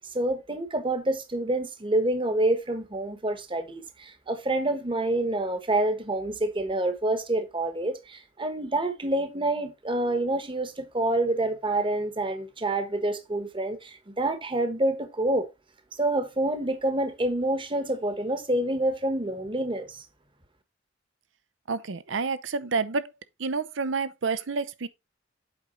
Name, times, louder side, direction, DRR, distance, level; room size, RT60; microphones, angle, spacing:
voice 1, 0.0-15.5 16.0-20.0, right 1 dB, 25° right, 1.2 m, -27 dB
voice 2, 21.7-23.1 23.4-24.9, right 4 dB, 70° right, 0.7 m, -29 dB
8.0 x 5.0 x 4.0 m
head